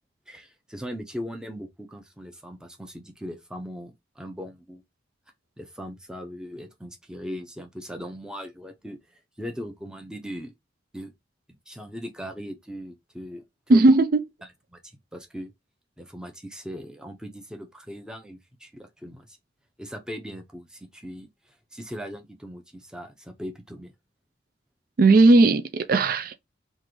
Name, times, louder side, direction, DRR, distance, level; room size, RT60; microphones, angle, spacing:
voice 1, 0.3-4.8 5.6-10.5 10.9-11.1 11.7-13.8 14.7-14.8 15.1-15.5 16.0-19.4 19.8-21.3 21.7-23.9, equal, 5° right, 0.7 m, -39 dB
voice 2, 13.7-14.2 25.0-26.3, right 2 dB, 45° right, 0.4 m, -17 dB
3.6 x 2.5 x 3.1 m
head